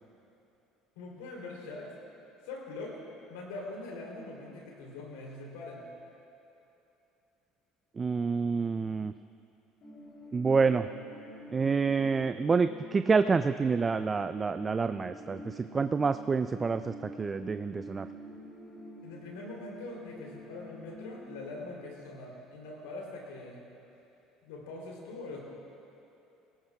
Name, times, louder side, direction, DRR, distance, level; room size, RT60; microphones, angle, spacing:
voice 1, 0.9-1.9 2.4-3.0 3.3-5.9 19.0-23.6 24.4-25.4, left 2 dB, 85° left, -2 dB, 3.2 m, -43 dB
voice 2, 8.0-9.1 10.3-10.9 11.5-18.1, right 5 dB, 30° right, 11 dB, 0.3 m, -28 dB
sound 1, 9.8-21.7, equal, 55° left, 3.3 m, -47 dB
18.5 x 18.0 x 2.4 m, 2.9 s
hypercardioid pair, 75°, 0 cm